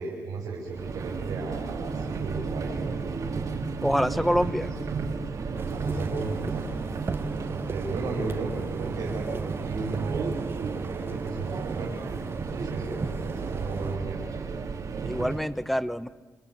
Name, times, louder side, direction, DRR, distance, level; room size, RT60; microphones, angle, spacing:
voice 1, 0.0-3.3 4.0-4.7 5.4-6.9 7.5-10.3 10.5-11.9 12.3-14.2, right 3 dB, 90° right, -2 dB, 6.3 m, -35 dB
Subway metro underground, 0.7-15.5, right 4 dB, 70° right, 3.0 m, -33 dB
voice 2, 3.8-4.7 15.0-16.1, equal, ahead, 14 dB, 1.3 m, -26 dB
sound 1, 5.6-14.0, right 4 dB, 40° right, 1.8 m, -38 dB
Explosion, 5.9-7.7, left 3 dB, 60° left, 5.1 m, -47 dB
29.5 x 23.5 x 8.3 m, 1.3 s
cardioid pair, 65°, 6 cm